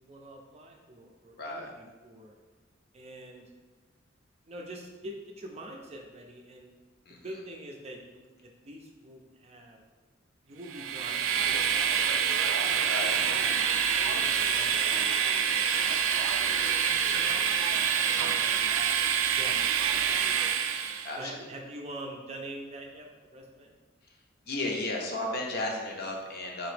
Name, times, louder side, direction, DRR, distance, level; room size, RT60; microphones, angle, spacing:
voice 1, 0.0-2.3 2.9-3.4 4.5-6.7 7.2-9.8 10.5-12.7 13.3-15.8 16.4-17.6 18.1-18.8 19.3-20.5 21.2-23.8, right 1 dB, 30° right, 1 dB, 0.5 m, -46 dB
voice 2, 1.4-1.7 7.1-7.3 12.8-13.2 17.0-17.3 21.0-21.5 24.4-26.7, left 2 dB, 50° left, 0 dB, 0.6 m, -34 dB
Train, 10.7-21.1, right 8 dB, 90° right, 0.3 m, -26 dB
4.1 x 2.9 x 3.3 m, 1.3 s
head